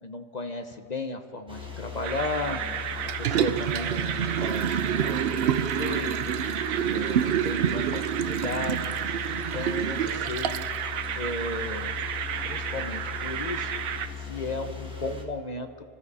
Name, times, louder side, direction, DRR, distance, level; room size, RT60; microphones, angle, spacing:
voice 1, 0.0-2.6 3.2-6.4 6.9-9.0 9.3-10.7 11.2-11.9 12.4-13.8 14.2-15.7, left 2 dB, 40° left, 7 dB, 0.8 m, -35 dB
sound 1, 1.5-15.2, left 6 dB, 5° right, 1.8 m, -39 dB
sound 2, 2.0-14.1, right 9 dB, 80° right, 1.1 m, -33 dB
Liquid, 3.1-10.8 11.2-11.3, right 9 dB, 60° right, 0.6 m, -28 dB
25.0 x 12.5 x 4.1 m, 2.3 s
omnidirectional pair, 1.4 m